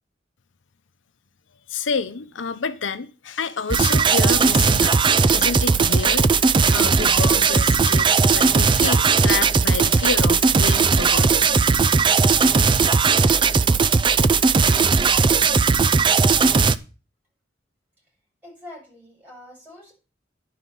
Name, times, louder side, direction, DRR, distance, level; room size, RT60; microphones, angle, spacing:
voice 1, 1.7-6.3 6.7-11.5, left 5 dB, 85° left, 0.7 m, -29 dB
sound 1, 3.7-16.8, right 5 dB, 25° right, 0.4 m, -17 dB
voice 2, 18.4-19.9, left 1 dB, 10° right, 6.9 m, -44 dB
11.0 x 5.1 x 7.1 m
head